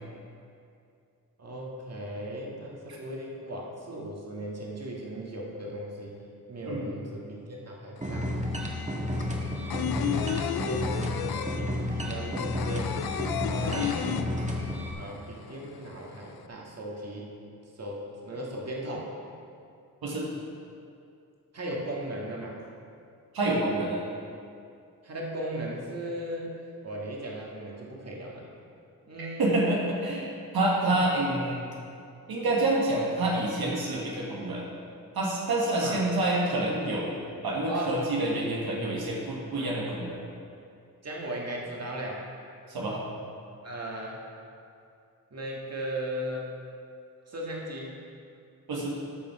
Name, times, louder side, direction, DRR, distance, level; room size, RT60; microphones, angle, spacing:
voice 1, 1.4-6.2 6.5-8.3 9.9-13.0 13.4-14.3 15.0-17.3 17.8-19.2 21.5-22.6 25.0-28.5 29.0-29.8 30.8-31.0 35.8-36.0 37.7-38.1 39.6-39.7 41.0-42.3 43.6-44.2 45.3-46.5 47.3-47.9, right 1 dB, 45° right, -2 dB, 1.9 m, -37 dB
sound 1, 8.0-8.1 8.3-14.9 15.2-15.3 15.6-16.4, left 10 dB, 80° left, 0.5 m, -32 dB
sound 2, 8.0-14.9, left 1 dB, 20° right, 1.5 m, -31 dB
voice 2, 23.3-24.0 29.4-31.6 32.3-34.6 35.1-37.1 37.4-40.2 42.7-43.0 48.7-48.9, right 2 dB, 85° right, -3 dB, 1.6 m, -27 dB
13.5 x 5.5 x 4.8 m, 2.4 s
cardioid pair, 70°, 36 cm